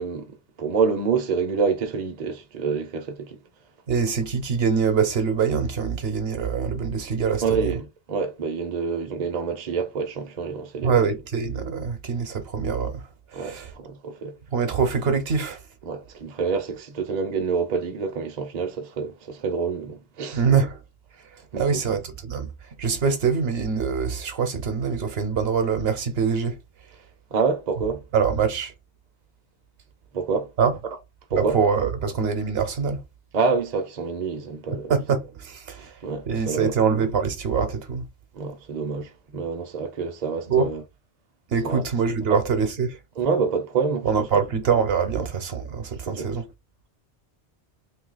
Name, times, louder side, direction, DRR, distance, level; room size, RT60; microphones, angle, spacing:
voice 1, 0.0-3.4 7.4-11.1 13.3-14.4 15.8-20.4 21.5-22.0 27.3-28.0 30.1-30.5 31.3-31.6 33.3-34.9 35.8-36.7 38.3-40.8 41.6-41.8 42.3-42.4 43.2-44.1 45.1-45.3 46.1-46.3, right 5 dB, 45° right, 0.6 m, -27 dB
voice 2, 3.9-7.6 10.8-13.0 13.3-13.7 14.5-15.6 20.3-20.8 21.6-22.5 22.8-26.6 28.1-28.7 30.6-30.7 31.3-33.0 34.9-35.9 36.3-38.1 40.5-40.7 41.5-43.0 44.0-46.5, right 6 dB, 60° right, 1.0 m, -24 dB
2.9 x 2.7 x 3.9 m
omnidirectional pair, 1.2 m